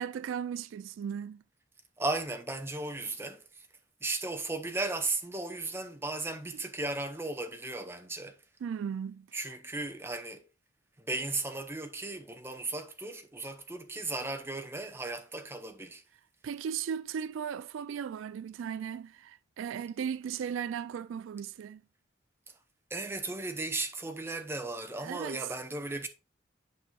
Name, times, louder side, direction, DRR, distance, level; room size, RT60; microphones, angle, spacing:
voice 1, 0.0-1.4 8.6-9.3 16.4-21.8 25.0-25.5, right 8 dB, 80° right, 0.3 m, -36 dB
voice 2, 2.0-3.4 4.0-8.4 9.3-10.4 11.0-16.0 22.9-26.1, right 2 dB, 10° right, 0.7 m, -36 dB
8.5 x 5.9 x 2.3 m
head